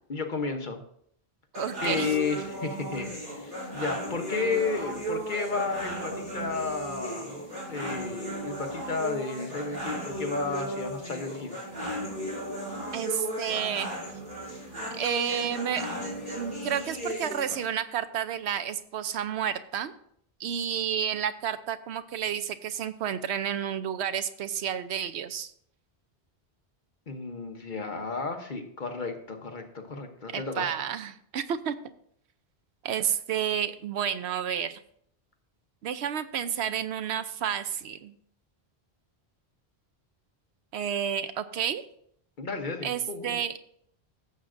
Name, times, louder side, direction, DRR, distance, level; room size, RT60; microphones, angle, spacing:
voice 1, 0.1-0.8 1.8-7.4 7.7-11.6 27.1-30.7 42.4-43.4, left 4 dB, 50° left, 4 dB, 1.1 m, -32 dB
sound 1, 1.5-17.6, right 1 dB, 50° right, 3.6 m, -36 dB
voice 2, 1.5-2.1 12.9-13.9 15.0-15.9 16.4-19.9 20.4-25.5 30.3-31.7 32.8-34.8 35.8-38.1 40.7-41.8 42.8-43.5, right 9 dB, 85° right, 11 dB, 0.9 m, -30 dB
15.0 x 7.4 x 2.5 m, 0.67 s
omnidirectional pair, 1.1 m